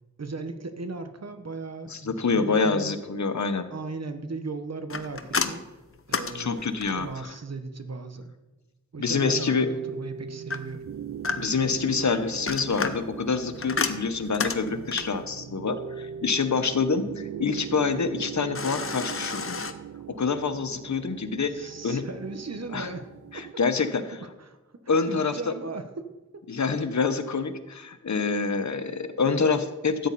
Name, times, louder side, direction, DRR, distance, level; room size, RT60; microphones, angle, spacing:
voice 1, 0.2-3.0 3.7-5.6 6.1-8.3 8.9-10.8 21.5-23.1 23.3-23.4 24.1-24.6 25.0-26.4, right 3 dB, 60° right, 8 dB, 1.2 m, -37 dB
voice 2, 1.9-3.7 6.3-7.1 9.0-9.7 11.4-19.6 20.1-22.1 22.7-22.9 23.3-24.1 24.9-25.5 26.5-30.1, left 4 dB, 70° left, 10 dB, 1.0 m, -26 dB
sound 1, 4.9-7.2 10.5-11.7 12.3-15.2 18.5-19.7, left 5 dB, 50° left, 0.8 m, -31 dB
sound 2, 9.2-23.5, right 8 dB, 75° right, 0.5 m, -40 dB
13.5 x 9.2 x 4.2 m, 1.1 s
wide cardioid pair, 60°, 29 cm